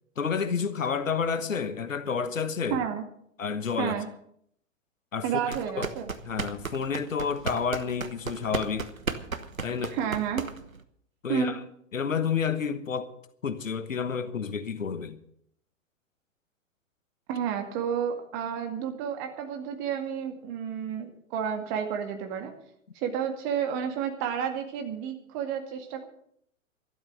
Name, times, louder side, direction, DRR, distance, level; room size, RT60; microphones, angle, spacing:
voice 1, 0.2-2.8 3.4-4.0 5.1-5.9 6.2-8.9 9.6-10.0 11.2-11.6 11.9-13.1 13.4-15.2, left 6 dB, 70° left, 1.2 m, -30 dB
voice 2, 2.7-3.0 3.8-4.1 5.2-6.1 9.7-10.4 11.3-11.6 17.3-22.5 23.0-26.0, right 8 dB, 30° right, 2.1 m, -31 dB
sound 1, 5.4-10.8, right 4 dB, 85° right, 1.2 m, -35 dB
12.5 x 12.0 x 6.4 m
figure-of-eight pair, 105°, 40 cm